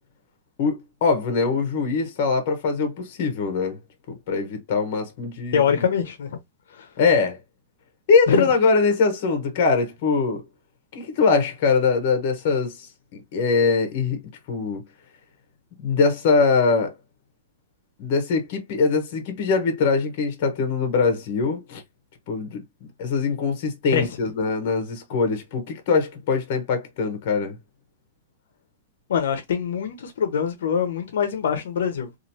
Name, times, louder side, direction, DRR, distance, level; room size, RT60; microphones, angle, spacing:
voice 1, 0.6-3.8 4.1-5.8 7.0-7.4 8.1-10.4 10.9-14.8 15.8-16.9 18.0-21.8 22.3-22.6 23.0-27.6, left 4 dB, 45° left, 1.0 m, -22 dB
voice 2, 5.5-6.4 8.3-8.5 23.9-24.1 29.1-32.1, left 7 dB, 80° left, 0.7 m, -23 dB
3.0 x 2.5 x 2.7 m
supercardioid pair, 165°, 0 cm